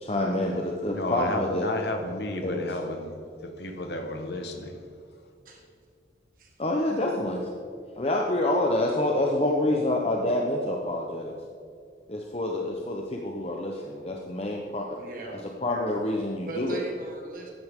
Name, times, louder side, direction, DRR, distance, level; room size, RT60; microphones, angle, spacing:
voice 1, 0.0-1.7 2.4-2.7 6.6-7.5 8.0-11.4 12.1-14.9 15.6-16.8, left 1 dB, 35° left, 0 dB, 0.9 m, -27 dB
voice 2, 0.9-3.1 3.4-4.8, left 1 dB, 65° left, 4 dB, 1.4 m, -32 dB
voice 3, 14.9-15.4 16.5-17.5, right 2 dB, 45° right, 0 dB, 1.6 m, -39 dB
14.5 x 11.0 x 3.7 m, 2.3 s
head